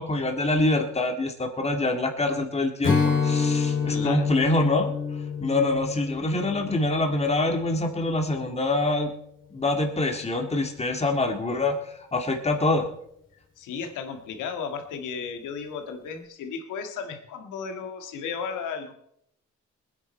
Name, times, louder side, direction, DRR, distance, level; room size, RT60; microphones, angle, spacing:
voice 1, 0.0-3.0 3.2-4.9 5.4-9.1 9.5-11.8 12.1-12.9, left 2 dB, 20° left, 3 dB, 2.0 m, -25 dB
Strum, 2.8-8.3, left 5 dB, 40° left, 2.8 m, -28 dB
voice 2, 3.9-4.3 13.6-18.9, left 6 dB, 85° left, 6 dB, 1.9 m, -34 dB
20.5 x 9.9 x 4.3 m, 0.73 s
cardioid pair, 90°, 30 cm